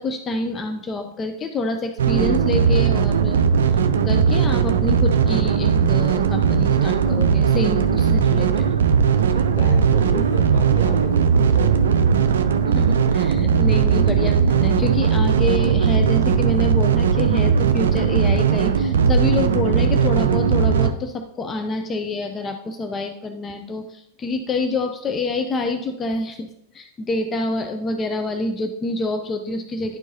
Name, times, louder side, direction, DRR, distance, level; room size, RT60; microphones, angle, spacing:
voice 1, 0.0-3.5 4.0-8.7 12.8-12.9 13.1-30.0, left 2 dB, 25° left, 5 dB, 0.5 m, -27 dB
sound 1, 2.0-20.9, right 6 dB, 65° right, 0.4 m, -18 dB
voice 2, 9.1-11.9, left 1 dB, 65° left, 2 dB, 1.3 m, -33 dB
10.5 x 4.5 x 2.7 m, 0.77 s
figure-of-eight pair, 90°, 0 cm